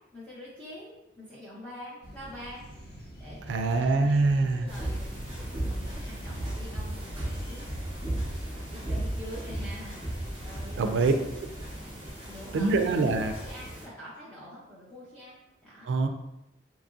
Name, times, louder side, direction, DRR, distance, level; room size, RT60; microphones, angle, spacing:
voice 1, 0.1-11.1 12.3-15.9, equal, 5° left, -9 dB, 0.6 m, -46 dB
sound 1, 2.0-12.1, equal, 60° left, 0.6 m, -45 dB
voice 2, 3.5-4.7 10.8-11.5 12.5-13.3 15.8-16.1, right 3 dB, 85° right, 7 dB, 0.3 m, -24 dB
sound 2, 4.7-13.9, right 1 dB, 30° right, 0.8 m, -36 dB
2.9 x 2.6 x 2.4 m, 0.90 s
head